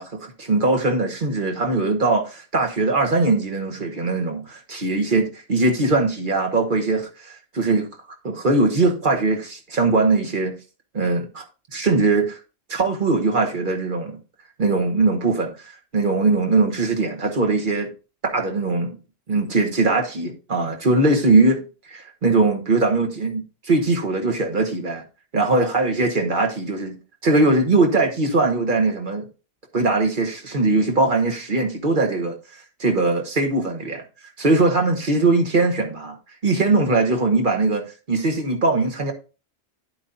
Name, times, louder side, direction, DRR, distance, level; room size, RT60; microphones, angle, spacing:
voice 1, 0.0-7.9 8.2-10.6 10.9-11.4 11.7-12.4 12.7-14.2 14.6-17.9 18.3-19.0 19.3-25.0 25.3-27.0 27.2-29.3 29.7-34.0 34.4-36.2 36.4-39.1, right 3 dB, 50° right, 1.4 m, -21 dB
10.5 x 7.8 x 2.7 m
omnidirectional pair, 1.2 m